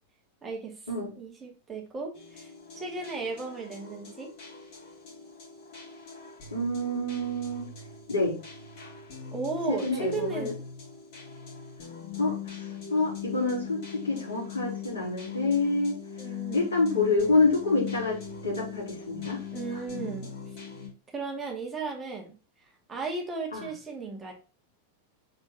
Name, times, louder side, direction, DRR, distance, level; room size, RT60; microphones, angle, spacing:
voice 1, 0.4-0.8 1.2-2.5 2.7-4.3 9.3-10.6 16.2-16.7 19.5-20.3 21.1-22.4 22.9-24.3, right 4 dB, 15° right, -1 dB, 2.1 m, -35 dB
sound 1, 2.1-20.9, left 8 dB, 45° left, 4.1 m, -41 dB
voice 2, 6.5-7.7 8.1-8.4 9.7-10.5 12.2-12.6 12.9-13.8 14.0-16.0 16.5-19.4 23.5-23.7, left 3 dB, 70° left, -3 dB, 4.0 m, -27 dB
6.0 x 4.7 x 4.0 m, 0.35 s
figure-of-eight pair, 90°, 0 cm